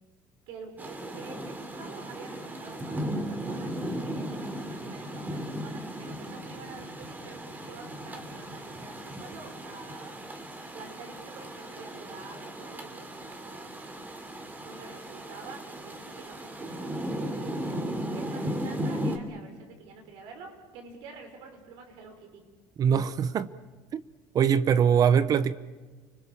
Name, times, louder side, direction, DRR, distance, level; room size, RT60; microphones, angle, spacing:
voice 1, 0.5-10.2 10.7-13.7 14.6-17.8 18.1-22.4, right 4 dB, 75° right, 5.9 m, -48 dB
Rain, 0.8-19.2, equal, 20° right, 2.8 m, -36 dB
voice 2, 22.8-23.5 23.9-24.0 24.3-25.5, right 8 dB, 45° right, 0.9 m, -22 dB
29.5 x 21.0 x 7.1 m
cardioid pair, 110°, 9 cm